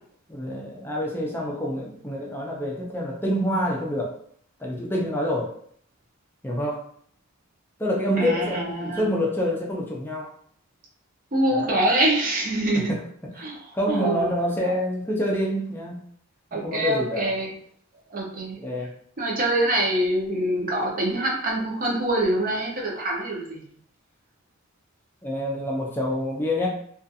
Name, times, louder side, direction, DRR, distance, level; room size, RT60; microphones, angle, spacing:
voice 1, 0.3-4.2 4.6-5.6 6.4-6.9 7.8-10.3 11.5-11.8 12.9-13.0 13.4-13.5 13.7-16.0 16.5-17.3 18.6-18.9 25.2-26.7, equal, 10° left, -2 dB, 0.4 m, -27 dB
voice 2, 8.2-9.1 11.3-12.9 13.4-13.6 13.9-14.3 16.5-17.5 18.1-18.6 19.2-23.6, right 1 dB, 40° right, -2 dB, 0.7 m, -25 dB
2.4 x 2.4 x 2.6 m, 0.62 s
head